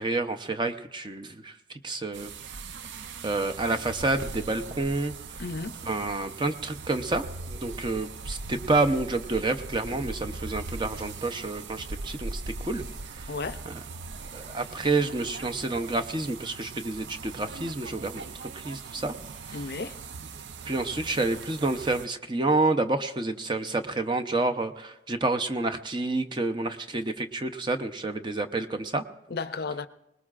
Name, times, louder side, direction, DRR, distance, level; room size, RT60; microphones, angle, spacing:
voice 1, 0.0-1.5 1.8-2.3 3.2-5.1 5.8-12.8 13.7-13.8 14.3-19.1 19.5-19.6 20.7-29.0, right 2 dB, 25° right, 0.7 m, -29 dB
sound 1, 2.1-22.1, right 4 dB, 70° right, 0.6 m, -40 dB
voice 2, 5.4-5.8 13.3-13.6 19.5-20.0 29.3-29.9, left 4 dB, 55° left, 0.5 m, -33 dB
24.5 x 19.5 x 2.5 m
head